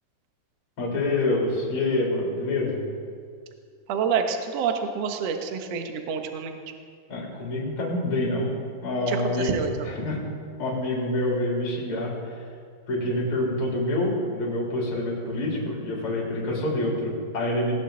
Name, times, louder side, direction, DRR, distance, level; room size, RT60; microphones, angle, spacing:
voice 1, 0.8-2.8 7.1-8.5 8.8-10.2 10.6-12.3 12.9-17.7, left 1 dB, 35° left, -3 dB, 3.9 m, -27 dB
voice 2, 3.9-6.6 9.1-9.7, right 6 dB, 75° right, 5 dB, 1.4 m, -27 dB
18.0 x 17.5 x 3.9 m, 2.1 s
omnidirectional pair, 4.7 m